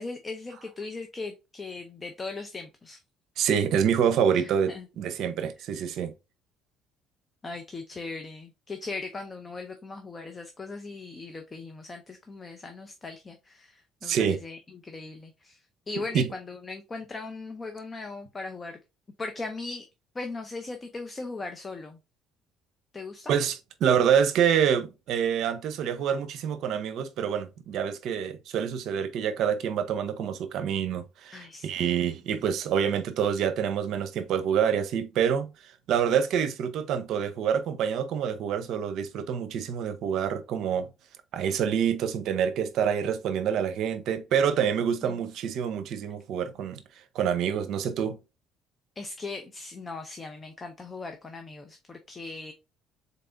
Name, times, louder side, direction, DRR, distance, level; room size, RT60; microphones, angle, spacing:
voice 1, 0.0-3.0 4.3-4.9 7.4-15.6 15.9-18.8 19.2-19.9 20.1-22.0 22.9-23.3 31.3-32.0 44.8-45.2 49.0-52.5, left 3 dB, 25° left, 0.6 m, -39 dB
voice 2, 3.4-6.1 14.0-14.4 16.1-16.3 23.3-35.5 35.9-40.9 41.3-46.8 47.1-48.2, right 8 dB, 65° right, 0.6 m, -27 dB
4.0 x 3.4 x 2.5 m
cardioid pair, 115°, 0 cm